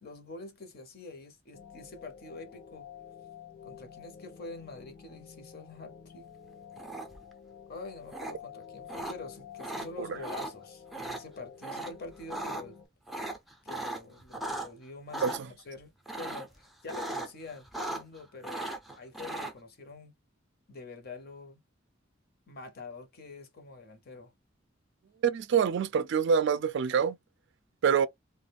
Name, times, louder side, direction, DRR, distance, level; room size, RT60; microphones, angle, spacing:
voice 1, 0.0-2.9 3.6-6.3 7.7-12.8 13.6-20.1 20.7-21.6 22.5-24.3, left 3 dB, 50° left, 0.8 m, -46 dB
sound 1, 1.5-12.9, left 8 dB, 85° left, 0.8 m, -50 dB
Small Dog Growling, 6.8-7.3 8.1-8.3 8.9-9.1 9.6-9.9 10.2-10.5 10.9-11.2 11.6-11.9 12.2-12.6 13.1-14.7 15.1-15.4 16.1-16.5 16.9-17.3 17.6-18.2 18.4-19.5, right 2 dB, ahead, 0.5 m, -37 dB
voice 2, 25.2-27.2 27.8-28.1, right 7 dB, 65° right, 0.3 m, -25 dB
2.4 x 2.2 x 3.3 m
head